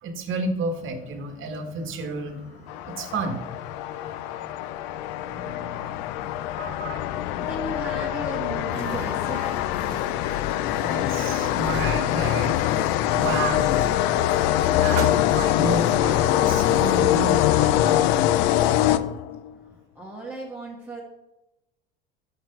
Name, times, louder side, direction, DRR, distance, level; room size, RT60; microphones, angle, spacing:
voice 1, 0.0-2.3 2.9-3.4 6.6-7.1 10.8-12.6 13.1-13.8 14.8-18.1, right 3 dB, 45° right, 6 dB, 1.4 m, -31 dB
sound 1, 0.6-19.1, left 3 dB, 75° left, 1.7 m, -48 dB
sound 2, 2.7-19.5, left 13 dB, 60° left, 0.5 m, -23 dB
voice 2, 5.2-5.8 7.4-9.7 19.7-21.0, right 2 dB, 5° right, -4 dB, 1.6 m, -36 dB
sound 3, 8.7-17.5, right 5 dB, 80° right, 1.2 m, -40 dB
5.9 x 5.3 x 5.3 m, 0.94 s
hypercardioid pair, 70°, 29 cm